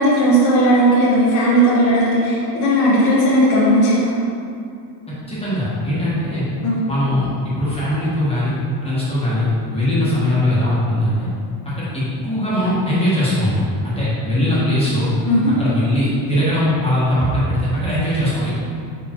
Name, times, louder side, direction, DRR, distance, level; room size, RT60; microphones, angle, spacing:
voice 1, 0.0-4.1 6.6-6.8 14.6-14.7 15.2-15.5, equal, 40° left, -8 dB, 1.1 m, -16 dB
voice 2, 5.3-6.4 6.9-8.5 8.8-9.4 9.7-11.3 11.8-15.1 15.6-18.5, left 1 dB, 15° left, -10 dB, 1.4 m, -20 dB
5.1 x 4.6 x 4.4 m, 2.4 s
cardioid pair, 165°, 44 cm